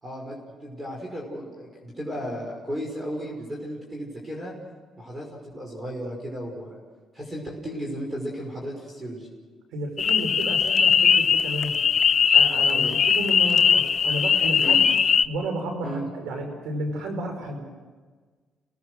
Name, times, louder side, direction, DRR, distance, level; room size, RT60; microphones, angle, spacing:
voice 1, 0.0-4.5 5.0-6.8 7.1-9.3 12.7-12.9 14.6-14.8 15.8-16.1, equal, 20° right, -1 dB, 5.7 m, -35 dB
voice 2, 9.7-11.7 12.3-14.8 15.3-17.7, right 1 dB, 85° right, 4 dB, 5.2 m, -32 dB
sound 1, 10.0-15.2, left 7 dB, 50° left, 0.7 m, -20 dB
29.5 x 19.0 x 6.5 m, 1.4 s
cardioid pair, 90°, 0 cm